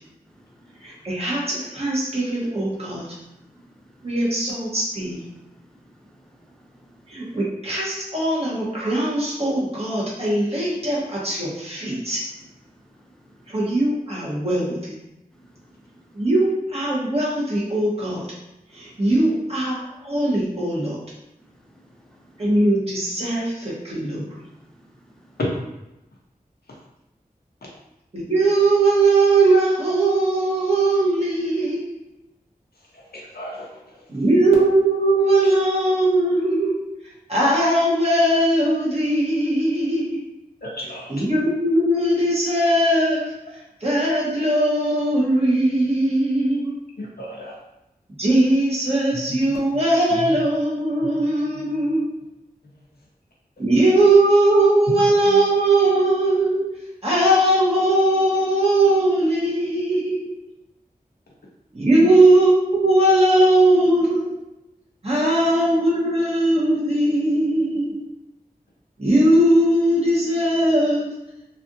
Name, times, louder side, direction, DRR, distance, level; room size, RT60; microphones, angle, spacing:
voice 1, 0.8-3.1 4.0-5.2 7.1-12.2 13.5-15.0 16.1-18.3 18.7-19.8 20.0-21.0 22.4-24.2 28.1-32.0 34.1-36.8 37.3-40.2 41.1-43.2 43.8-46.7 48.2-52.1 53.6-56.7 57.0-60.3 61.7-62.6 62.8-64.3 65.0-68.0 69.0-71.1, right 1 dB, 40° right, 1.2 m, -19 dB
voice 2, 2.8-3.1 3.5-3.7 5.3-5.7 6.6-6.9 13.3-13.5 15.3-16.0 21.7-22.4 24.8-24.9, equal, 5° left, 0.6 m, -54 dB
voice 3, 32.9-33.8 40.6-41.1 47.0-47.5 49.1-49.4 50.1-50.3 51.5-51.6 54.9-55.0 55.2-55.4 62.0-62.1, left 1 dB, 80° left, 0.8 m, -31 dB
3.2 x 2.5 x 2.6 m
wide cardioid pair, 45°, 16 cm